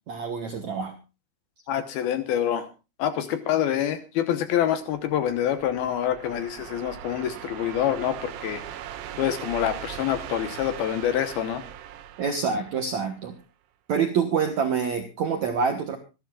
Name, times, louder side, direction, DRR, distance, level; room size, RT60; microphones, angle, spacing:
voice 1, 0.1-0.9 12.2-13.3 13.9-16.0, right 6 dB, 65° right, 5 dB, 1.8 m, -26 dB
voice 2, 1.7-2.7 3.0-8.6 9.2-11.6, left 10 dB, 70° left, 10 dB, 2.7 m, -26 dB
sound 1, 4.9-13.4, right 11 dB, 85° right, 3.6 m, -40 dB
25.5 x 11.5 x 2.4 m, 0.29 s
omnidirectional pair, 5.2 m